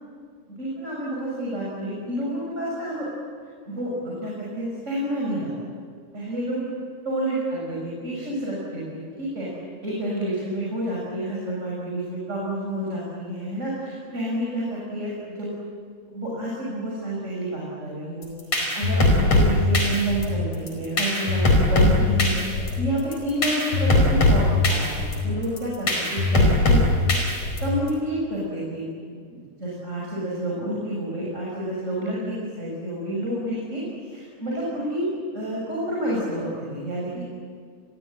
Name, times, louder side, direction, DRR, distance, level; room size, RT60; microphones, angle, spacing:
voice 1, 0.5-3.1 3.6-5.5 6.1-6.6 7.0-9.5 9.8-15.6 16.1-26.8 27.3-35.1 35.3-37.4, right 1 dB, 15° right, -5 dB, 6.3 m, -29 dB
sound 1, 18.2-27.9, left 2 dB, 30° left, 5.0 m, -21 dB
29.0 x 22.0 x 9.1 m, 2.1 s
omnidirectional pair, 6.0 m